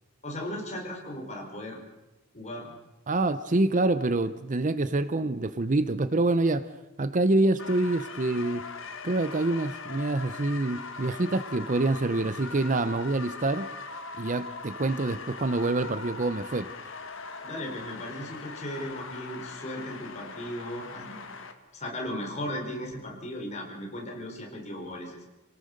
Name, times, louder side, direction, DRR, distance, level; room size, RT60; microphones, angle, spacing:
voice 1, 0.2-1.8 2.3-2.7 17.4-21.2 21.7-25.2, left 1 dB, 35° left, 0 dB, 4.7 m, -36 dB
voice 2, 3.1-6.7 7.0-8.6 9.0-13.7 14.2-16.7, right 2 dB, 35° right, 13 dB, 0.7 m, -26 dB
sound 1, 7.6-21.5, left 4 dB, 60° left, 1.8 m, -41 dB
28.5 x 18.5 x 6.6 m, 1.0 s
head